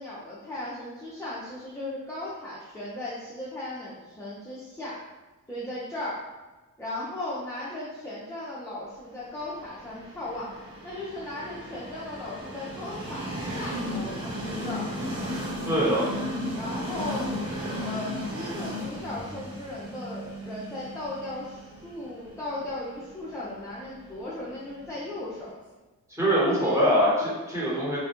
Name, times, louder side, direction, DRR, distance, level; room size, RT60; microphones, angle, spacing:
voice 1, 0.0-5.0 5.5-6.2 6.8-10.5 10.8-15.0 16.5-17.3 17.8-25.5 26.6-26.9, left 1 dB, 10° left, -8 dB, 0.5 m, -37 dB
Train, 9.5-25.3, equal, 80° right, 0.9 m, -35 dB
voice 2, 15.7-16.0 26.2-28.0, equal, 10° right, -7 dB, 1.1 m, -23 dB
2.3 x 2.1 x 2.8 m, 1.2 s
cardioid pair, 70°, 34 cm